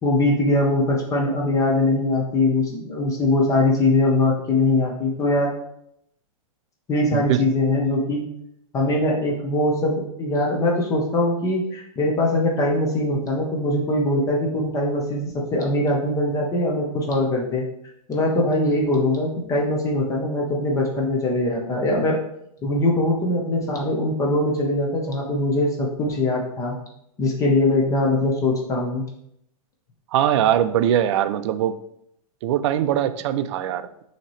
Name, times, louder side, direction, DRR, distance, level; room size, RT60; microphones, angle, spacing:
voice 1, 0.0-5.5 6.9-8.2 8.7-17.6 18.1-22.2 22.6-26.8 27.2-29.0, left 1 dB, 20° left, -1 dB, 0.7 m, -22 dB
voice 2, 30.1-31.7 32.4-33.9, right 10 dB, 50° right, 12 dB, 0.4 m, -21 dB
5.7 x 2.9 x 3.1 m, 0.75 s
hypercardioid pair, 140°, 19 cm